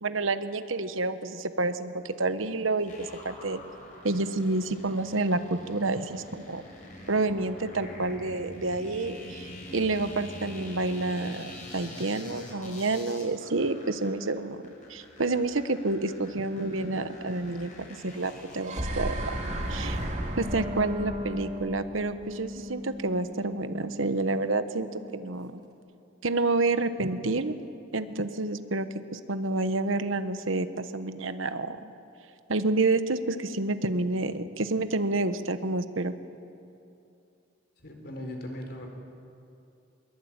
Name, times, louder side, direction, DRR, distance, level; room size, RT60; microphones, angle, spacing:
voice 1, 0.0-3.6 4.0-6.6 7.1-14.6 14.9-17.7 18.0-20.0 20.4-25.6 26.2-27.6 27.9-31.9 32.5-36.1, right 2 dB, 85° right, 11 dB, 1.2 m, -29 dB
sound 1, 2.8-20.3, left 1 dB, 40° left, 7.1 m, -45 dB
sound 2, 18.4-22.6, right 1 dB, 35° right, 2.9 m, -34 dB
Wind instrument woodwind instrument, 20.3-25.4, left 1 dB, 20° right, 3.2 m, -39 dB
voice 2, 37.8-38.9, left 1 dB, 55° left, 3 dB, 4.3 m, -38 dB
23.0 x 22.0 x 8.9 m, 2.6 s
head